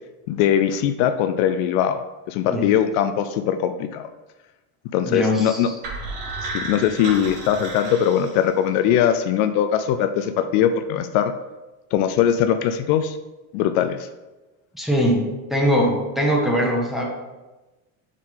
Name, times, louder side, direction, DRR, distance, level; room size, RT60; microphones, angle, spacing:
voice 1, 0.3-2.0 2.3-4.1 4.9-5.7 6.4-11.3 11.9-13.2 13.5-14.1, left 9 dB, 65° left, 9 dB, 0.5 m, -21 dB
voice 2, 5.1-5.8 14.7-15.2 15.5-17.0, equal, ahead, -2 dB, 1.0 m, -21 dB
sound 1, 5.8-8.9, right 3 dB, 55° right, 2.0 m, -33 dB
4.9 x 3.7 x 5.6 m, 1.1 s
supercardioid pair, 135°, 45 cm